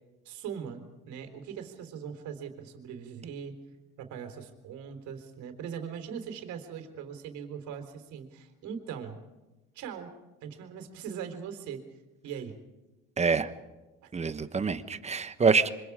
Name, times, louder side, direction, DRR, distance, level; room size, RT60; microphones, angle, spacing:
voice 1, 0.2-3.6 4.0-9.2 9.7-10.1 10.4-11.8 12.2-12.6 14.0-14.1, right 7 dB, 70° right, 6 dB, 4.0 m, -40 dB
voice 2, 13.2-13.5 14.1-15.7, right 5 dB, 20° right, 12 dB, 1.2 m, -26 dB
26.5 x 25.0 x 4.9 m, 1.1 s
cardioid pair, 115°, 30 cm